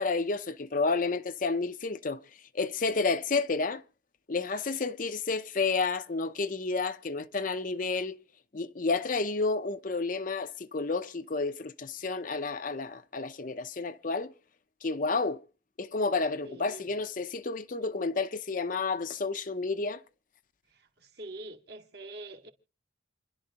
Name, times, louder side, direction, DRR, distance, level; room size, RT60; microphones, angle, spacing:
voice 1, 0.0-2.2 2.5-3.8 4.3-8.2 8.5-14.3 14.8-15.4 15.8-20.0, left 4 dB, 45° left, 0.6 m, -30 dB
voice 2, 16.4-16.9 21.2-22.5, right 2 dB, 60° right, 2.0 m, -44 dB
28.5 x 11.5 x 2.9 m
head